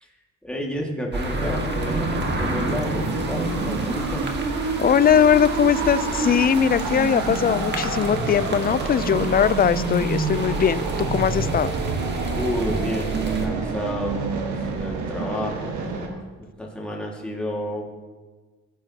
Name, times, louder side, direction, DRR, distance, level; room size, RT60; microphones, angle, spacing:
voice 1, 0.4-4.2 12.3-17.8, equal, 5° left, -2 dB, 1.9 m, -31 dB
sound 1, 1.1-13.5, right 1 dB, 35° right, 1.6 m, -32 dB
sound 2, 1.3-16.1, right 4 dB, 70° right, 1.5 m, -27 dB
voice 2, 4.8-11.7, left 8 dB, 30° left, 16 dB, 0.4 m, -20 dB
15.0 x 9.0 x 2.9 m, 1.3 s
cardioid pair, 90°, 30 cm